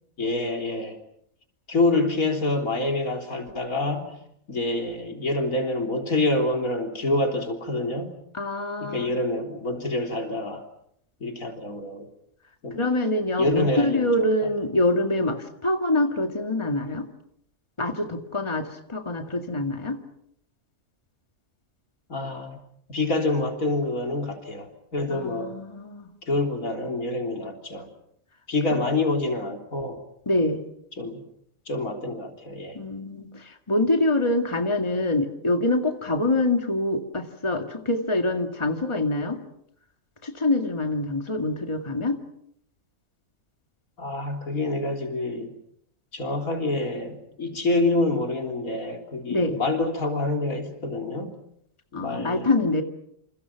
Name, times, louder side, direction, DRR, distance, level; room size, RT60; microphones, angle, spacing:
voice 1, 0.2-1.0 1.7-4.1 4.5-8.1 8.8-10.6 11.2-12.1 12.6-12.8 13.4-14.5 22.1-22.6 22.9-25.6 26.3-27.9 28.5-30.0 31.0-31.2 31.7-32.8 44.0-45.5 46.1-51.3 51.9-52.5, left 2 dB, 85° left, 3 dB, 4.0 m, -27 dB
voice 2, 8.3-9.1 12.7-17.1 17.8-20.0 25.1-26.1 30.3-30.6 32.7-39.4 40.2-42.2 49.3-49.6 51.9-52.8, left 2 dB, 20° left, 5 dB, 2.1 m, -25 dB
28.5 x 28.0 x 5.9 m, 0.73 s
omnidirectional pair, 1.4 m